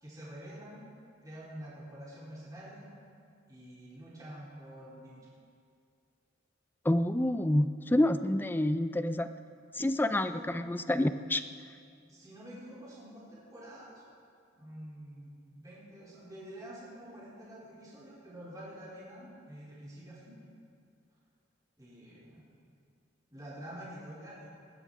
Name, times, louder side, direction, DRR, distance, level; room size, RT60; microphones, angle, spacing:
voice 1, 0.0-0.8 1.2-3.0 3.5-5.2 10.3-10.6 12.1-13.9 14.6-20.3 21.8-22.5 23.3-24.5, right 1 dB, 20° right, -8 dB, 3.5 m, -47 dB
voice 2, 6.9-9.3 9.8-11.4, left 1 dB, 10° left, 11 dB, 0.4 m, -28 dB
19.5 x 13.5 x 3.7 m, 2.3 s
head